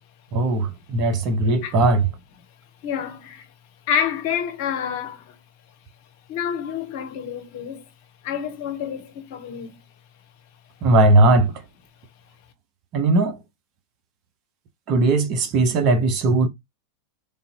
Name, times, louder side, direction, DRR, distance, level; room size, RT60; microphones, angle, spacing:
voice 1, 0.3-2.1 10.8-11.6 12.9-13.4 14.9-16.5, right 2 dB, 40° right, 0.8 m, -18 dB
voice 2, 2.8-3.5 3.9-5.4 6.3-7.9 8.2-9.8, left 8 dB, 50° left, 0.7 m, -28 dB
3.4 x 2.5 x 2.9 m
figure-of-eight pair, 90°, 0 cm